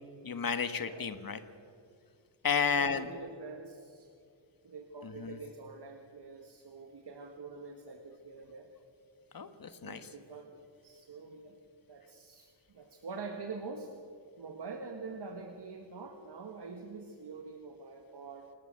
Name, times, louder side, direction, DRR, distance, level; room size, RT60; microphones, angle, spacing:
voice 1, 0.2-1.4 2.4-3.1 5.0-5.4 9.3-10.1, left 6 dB, 50° left, 10 dB, 1.5 m, -32 dB
voice 2, 0.8-1.1 2.5-4.1 4.6-8.7 9.8-10.5 10.8-11.6 11.9-13.9 14.4-18.5, right 4 dB, 60° right, 4 dB, 1.9 m, -45 dB
28.5 x 19.5 x 6.8 m, 2.4 s
wide cardioid pair, 140°, 46 cm